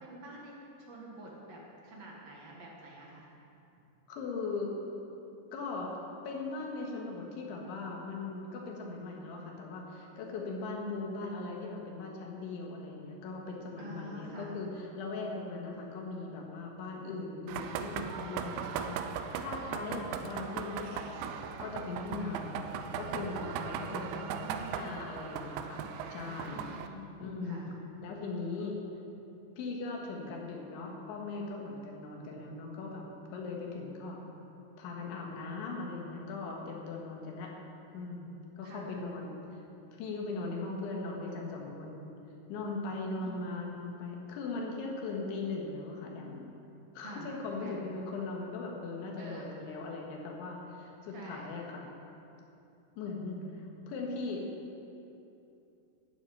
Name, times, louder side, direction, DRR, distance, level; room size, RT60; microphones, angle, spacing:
voice 1, 0.0-0.5 0.8-3.3 13.8-14.5 23.9-24.8 26.4-27.2 27.4-27.6 38.6-38.9 43.2-43.3 47.0-47.8 49.2-49.5 51.1-51.5, right 1 dB, 55° right, -2 dB, 1.9 m, -47 dB
voice 2, 4.1-4.7 5.5-6.0 6.2-24.2 24.7-25.8 26.1-26.6 27.2-27.7 28.0-28.8 29.6-34.2 34.8-37.6 37.9-39.4 39.9-42.1 42.5-46.5 47.0-51.8 53.0-54.5, left 3 dB, 80° left, 0 dB, 3.9 m, -39 dB
sound 1, 17.5-26.9, right 8 dB, 80° right, 2.9 m, -38 dB
12.0 x 8.3 x 9.3 m, 2.8 s
omnidirectional pair, 5.3 m